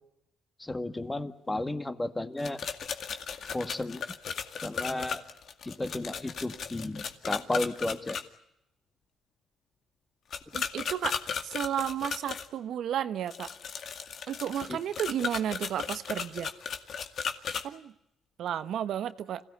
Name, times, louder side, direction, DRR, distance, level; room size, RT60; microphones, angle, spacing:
voice 1, 0.6-2.6 3.5-4.0 4.6-5.2 5.6-8.2 14.7-14.8, left 2 dB, 15° left, 9 dB, 1.9 m, -33 dB
sound 1, 2.4-8.2 10.3-12.5 13.3-17.6, left 6 dB, 60° left, 2.1 m, -36 dB
voice 2, 10.5-11.2 11.4-13.5 14.3-16.5 17.6-17.9 18.4-19.4, right 10 dB, 70° right, 12 dB, 1.1 m, -32 dB
26.5 x 17.0 x 10.0 m, 0.83 s
cardioid pair, 90°, 0 cm